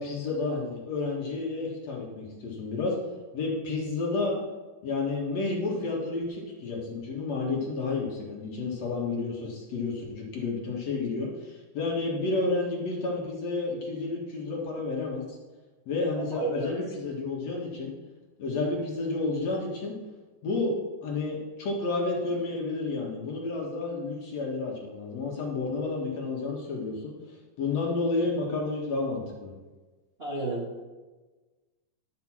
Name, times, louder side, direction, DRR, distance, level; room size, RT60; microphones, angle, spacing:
voice 1, 0.0-3.0 3.3-4.4 4.8-15.4 15.9-18.0 18.4-20.0 20.4-20.7 21.0-27.1 27.6-29.5, left 3 dB, 55° left, -2 dB, 2.4 m, -31 dB
voice 2, 16.3-16.7 30.2-30.8, right 2 dB, 35° right, -5 dB, 0.9 m, -31 dB
12.0 x 5.2 x 6.1 m, 1.2 s
omnidirectional pair, 4.2 m